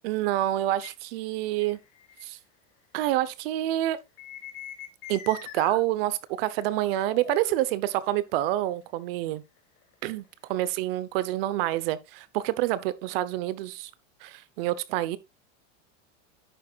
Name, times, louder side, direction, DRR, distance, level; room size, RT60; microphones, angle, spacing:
voice 1, 0.0-1.8 2.2-2.4 2.9-4.0 5.1-9.4 10.0-13.9 14.2-15.2, right 14 dB, 50° right, 1.0 m, -27 dB
sound 1, 0.8-0.9 1.6-2.2 4.2-5.8 6.6-6.7 7.0-8.4 9.6-10.9, left 9 dB, 35° left, 2.1 m, -42 dB
10.5 x 8.4 x 2.4 m
supercardioid pair, 175°, 37 cm